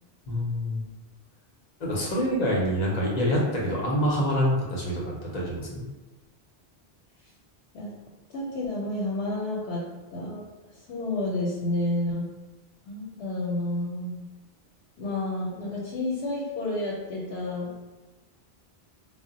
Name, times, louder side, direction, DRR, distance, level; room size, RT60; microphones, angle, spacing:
voice 1, 0.3-0.8 1.8-5.8, equal, 50° left, -4 dB, 0.6 m, -26 dB
voice 2, 8.3-9.8 10.1-10.5 10.9-12.3 12.9-14.3 15.0-17.7, left 2 dB, 90° left, -4 dB, 0.9 m, -30 dB
2.1 x 2.0 x 3.7 m, 1.1 s
omnidirectional pair, 1.1 m